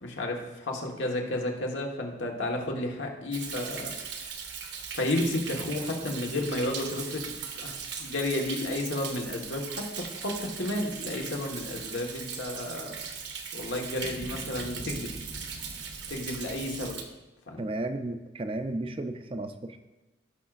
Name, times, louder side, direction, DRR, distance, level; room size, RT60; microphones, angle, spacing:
voice 1, 0.0-3.9 4.9-7.7 8.0-13.0 13.5-15.1 16.1-17.0 17.5-17.6, left 1 dB, 90° left, 0 dB, 1.5 m, -32 dB
Thunder, 3.3-17.0, right 6 dB, 70° right, 1.0 m, -39 dB
voice 2, 17.6-19.8, right 2 dB, 30° right, 8 dB, 0.5 m, -33 dB
16.0 x 6.0 x 2.5 m, 1.1 s
head